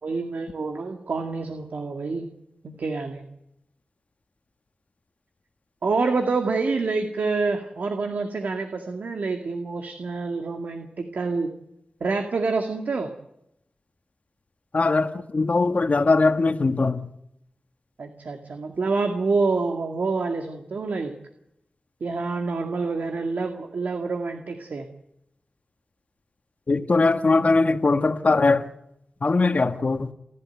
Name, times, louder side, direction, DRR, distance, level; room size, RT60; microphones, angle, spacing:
voice 1, 0.0-2.3 2.6-3.2 5.8-11.5 12.0-13.1 18.0-21.1 22.0-24.9, right 4 dB, 80° right, 2.1 m, -27 dB
voice 2, 14.7-17.0 26.7-28.7 29.2-30.1, left 3 dB, 55° left, 1.4 m, -21 dB
29.0 x 12.0 x 9.2 m
cardioid pair, 50°, 3 cm